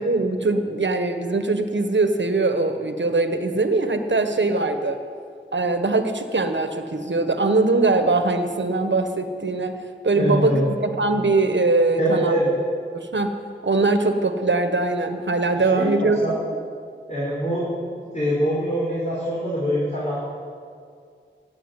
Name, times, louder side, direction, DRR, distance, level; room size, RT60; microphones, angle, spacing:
voice 1, 0.0-5.0 5.5-9.7 10.0-12.4 12.9-13.3 13.6-16.3, right 3 dB, 70° right, 7 dB, 1.4 m, -21 dB
voice 2, 10.1-10.7 12.0-12.5 15.6-16.4 17.1-20.2, equal, 35° left, -6 dB, 4.9 m, -24 dB
15.0 x 8.9 x 9.2 m, 2.2 s
wide cardioid pair, 40°, 20 cm